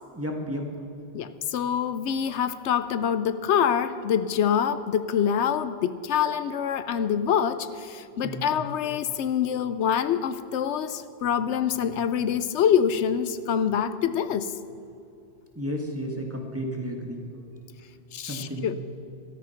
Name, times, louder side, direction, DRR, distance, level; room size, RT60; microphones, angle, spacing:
voice 1, 0.1-0.7 8.2-8.5 15.5-17.2 18.3-18.7, equal, 10° right, 2 dB, 1.7 m, -32 dB
voice 2, 1.1-14.5 18.1-18.8, left 8 dB, 80° left, 13 dB, 0.9 m, -25 dB
13.5 x 13.0 x 5.8 m, 2.8 s
omnidirectional pair, 1.2 m